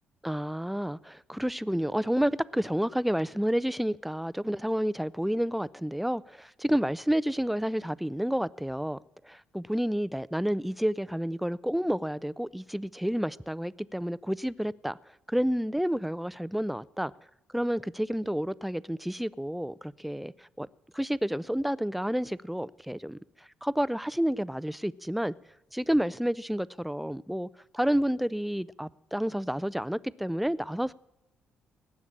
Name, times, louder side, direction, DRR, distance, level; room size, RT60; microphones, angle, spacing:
voice 1, 0.2-9.0 9.2-15.0 15.3-17.1 17.5-20.7 20.9-23.2 23.6-25.3 25.7-27.5 27.7-30.9, equal, ahead, 0.5 m, -30 dB
18.5 x 7.2 x 8.8 m
hypercardioid pair, 50°, 4 cm